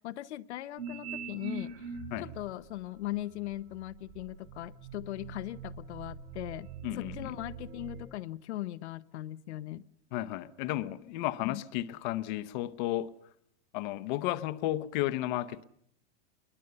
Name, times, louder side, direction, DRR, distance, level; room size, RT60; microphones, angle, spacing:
voice 1, 0.0-1.9 2.2-6.7 6.9-9.9 11.4-11.6, left 15 dB, 75° left, 0.9 m, -39 dB
sound 1, 0.8-2.4 3.1-8.1, right 5 dB, 65° right, 4.7 m, -43 dB
voice 2, 6.8-7.3 10.1-13.1 13.7-15.6, left 15 dB, 40° left, 0.9 m, -33 dB
22.5 x 20.0 x 6.8 m
supercardioid pair, 160°, 35 cm